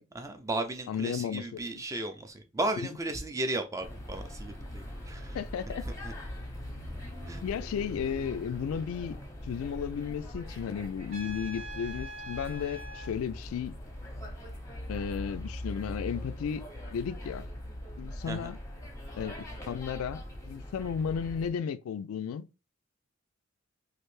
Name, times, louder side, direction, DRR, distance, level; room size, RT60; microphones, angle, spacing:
voice 1, 0.1-5.4 5.8-6.1 7.3-7.4 18.3-18.5, right 2 dB, 15° right, 0.4 m, -35 dB
voice 2, 0.9-1.8 5.3-5.9 7.4-9.2 9.4-13.8 14.9-16.6 16.9-17.5 18.0-18.6 19.2-22.4, left 7 dB, 85° left, 0.3 m, -34 dB
sound 1, 3.8-21.5, left 1 dB, 15° left, 0.7 m, -41 dB
Trumpet, 11.1-13.1, right 1 dB, 65° right, 1.0 m, -43 dB
3.2 x 2.5 x 3.1 m
head